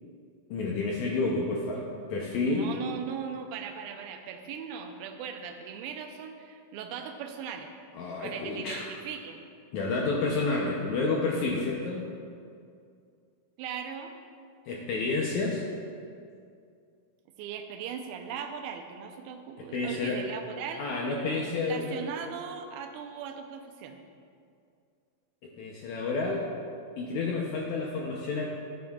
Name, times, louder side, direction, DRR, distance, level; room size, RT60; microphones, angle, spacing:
voice 1, 0.5-1.8 2.1-2.7 7.9-8.9 9.7-12.1 14.7-15.6 19.7-20.2 20.8-22.0 25.6-26.4 27.0-28.5, left 3 dB, 75° left, -2 dB, 1.7 m, -30 dB
voice 2, 2.4-7.7 8.2-9.4 13.6-14.1 17.4-20.8 21.3-24.0, right 7 dB, 90° right, 5 dB, 2.5 m, -39 dB
13.5 x 9.2 x 2.4 m, 2.4 s
omnidirectional pair, 4.2 m